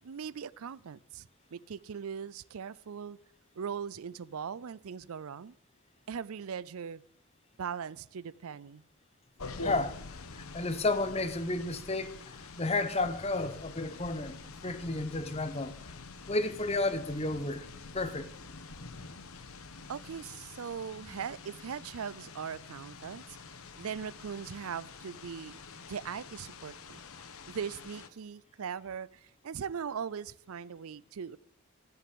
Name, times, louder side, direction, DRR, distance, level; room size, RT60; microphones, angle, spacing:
voice 1, 0.0-3.2 3.6-5.5 6.1-7.0 7.6-8.8 19.9-23.4 23.8-25.6 25.9-27.0 27.5-31.4, right 7 dB, 70° right, 0.5 m, -40 dB
sound 1, 9.4-28.1, left 3 dB, 70° left, 1.1 m, -46 dB
voice 2, 9.6-10.0 10.3-14.4 14.6-15.7 16.3-17.7 17.9-18.3, left 2 dB, 25° left, 0.9 m, -32 dB
13.5 x 8.3 x 7.8 m
head